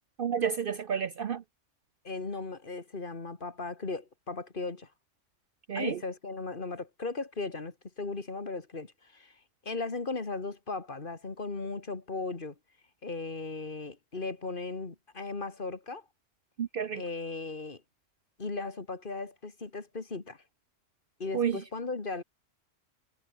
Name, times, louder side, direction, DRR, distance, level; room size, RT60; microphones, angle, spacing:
voice 1, 0.2-1.4 5.7-6.0 16.6-17.0 21.3-21.6, right 7 dB, 55° right, 0.7 m, -30 dB
voice 2, 2.0-4.9 5.8-9.3 9.6-12.6 13.0-16.0 16.9-17.8 18.4-20.4 21.2-22.2, left 3 dB, 45° left, 2.1 m, -37 dB
omnidirectional pair, 1.3 m